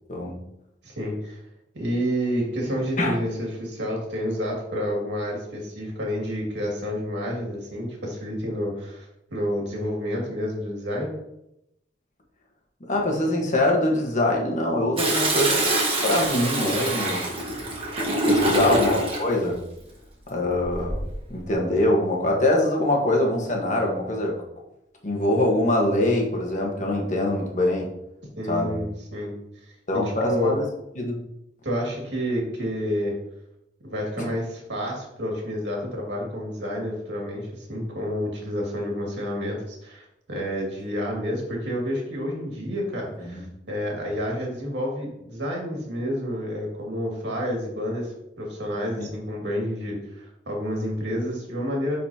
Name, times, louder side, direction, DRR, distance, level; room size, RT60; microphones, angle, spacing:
voice 1, 0.1-0.4 3.0-3.1 12.9-15.7 16.0-17.2 18.3-19.6 20.3-21.0 21.3-24.4 25.0-27.9 28.5-28.7 29.9-30.6 31.0-31.2 34.2-34.3 43.3-43.4 49.0-49.1, left 1 dB, 45° left, 0 dB, 1.3 m, -23 dB
voice 2, 0.8-1.4 1.7-11.1 18.6-18.7 28.4-28.9 29.1-29.3 29.6-29.7 30.2-30.6 31.6-33.1 33.8-52.0, equal, 80° right, -2 dB, 2.2 m, -29 dB
Toilet flush, 15.0-19.3 20.6-21.1, right 1 dB, 30° right, 1.5 m, -24 dB
10.0 x 4.1 x 2.9 m, 0.84 s
head